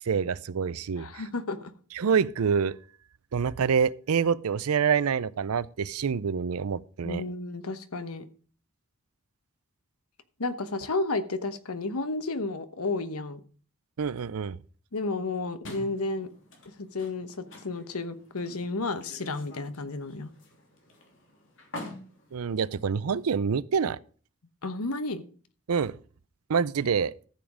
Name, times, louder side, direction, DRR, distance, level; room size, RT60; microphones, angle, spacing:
voice 1, 0.0-1.1 2.0-2.8 3.3-7.2 14.0-14.6 22.3-24.0 25.7-26.0 26.5-27.1, right 6 dB, 85° right, 0.5 m, -26 dB
voice 2, 1.0-1.7 7.0-8.3 10.4-13.4 14.9-16.3 16.7-20.3 24.6-25.3, left 3 dB, 90° left, 1.1 m, -32 dB
sound 1, 15.6-23.4, left 1 dB, 60° left, 3.0 m, -47 dB
13.5 x 7.3 x 5.0 m
head